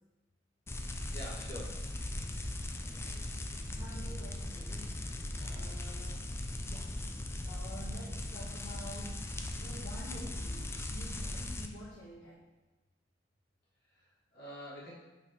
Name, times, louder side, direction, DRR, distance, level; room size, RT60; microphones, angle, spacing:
sound 1, 0.7-11.7, left 1 dB, 15° left, 0.4 m, -39 dB
voice 1, 1.1-1.9 13.8-14.9, equal, 60° left, -7 dB, 2.4 m, -46 dB
voice 2, 2.7-3.3 3.7-5.0 5.3-6.2 6.6-6.9 7.4-9.2 9.5-12.4, equal, 75° left, -10 dB, 1.6 m, -49 dB
5.6 x 4.6 x 4.8 m, 1.1 s
head